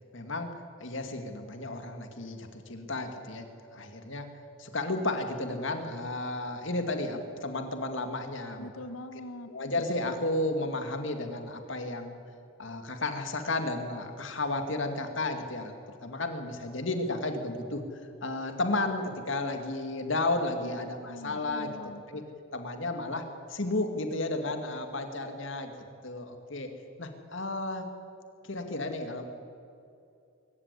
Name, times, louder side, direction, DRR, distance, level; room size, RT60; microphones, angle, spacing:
voice 1, 0.1-0.5 0.8-4.3 4.6-8.7 9.5-12.2 12.6-15.7 16.0-17.8 18.2-21.7 22.1-22.2 22.5-25.7 26.0-26.7 27.0-27.8 28.4-29.2, left 2 dB, 60° left, 6 dB, 2.2 m, -33 dB
voice 2, 8.6-9.5 20.6-20.7 21.1-22.0, left 1 dB, 85° left, 10 dB, 1.6 m, -42 dB
23.0 x 15.5 x 9.8 m, 2.6 s
head